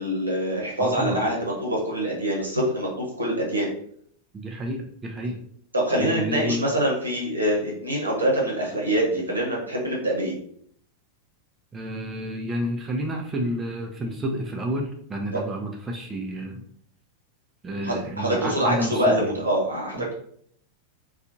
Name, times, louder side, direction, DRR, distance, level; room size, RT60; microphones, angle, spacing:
voice 1, 0.0-3.7 5.7-10.4 17.8-20.1, right 1 dB, 80° right, -2 dB, 0.9 m, -25 dB
voice 2, 0.8-1.2 4.3-5.4 6.0-6.7 11.7-16.6 17.6-19.4 20.0-20.1, right 1 dB, 20° right, 1 dB, 0.4 m, -30 dB
2.6 x 2.3 x 2.6 m, 0.63 s
figure-of-eight pair, 90°, 0 cm